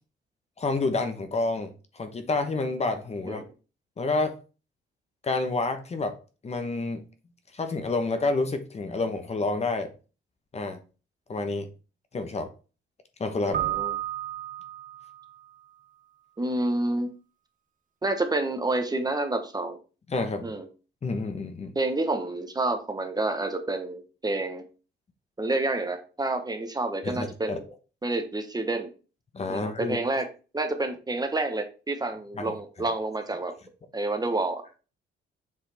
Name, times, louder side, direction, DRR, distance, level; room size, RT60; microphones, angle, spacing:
voice 1, 0.6-3.4 4.0-4.3 5.2-6.2 6.4-7.1 7.5-9.9 10.5-10.8 11.3-11.7 12.1-12.5 13.2-13.6 20.1-20.5 21.0-21.7 27.0-27.6 29.3-30.0 32.4-32.5, left 3 dB, 35° left, 1.0 m, -29 dB
voice 2, 13.5-13.9 16.4-17.1 18.0-19.8 20.4-20.7 21.7-24.6 25.4-27.6 28.0-28.9 29.5-30.3 30.5-33.5 33.9-34.6, right 2 dB, 20° right, 1.0 m, -29 dB
Keyboard (musical), 13.5-15.3, right 12 dB, 40° right, 0.5 m, -32 dB
7.3 x 3.9 x 3.4 m
cardioid pair, 90°, 20 cm